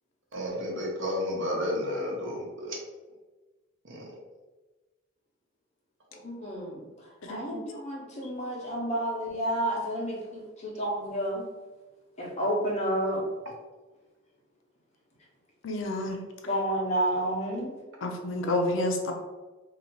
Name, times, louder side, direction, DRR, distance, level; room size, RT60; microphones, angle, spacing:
voice 1, 0.3-2.8 3.9-4.0, left 1 dB, 65° right, -2 dB, 1.0 m, -31 dB
voice 2, 6.1-6.9 7.3-11.4 12.2-13.2 16.5-17.7, right 1 dB, 35° left, -4 dB, 1.2 m, -30 dB
voice 3, 7.3-7.6 15.6-16.2 18.0-19.1, left 1 dB, 65° left, 3 dB, 0.6 m, -29 dB
2.9 x 2.8 x 4.1 m, 1.2 s
head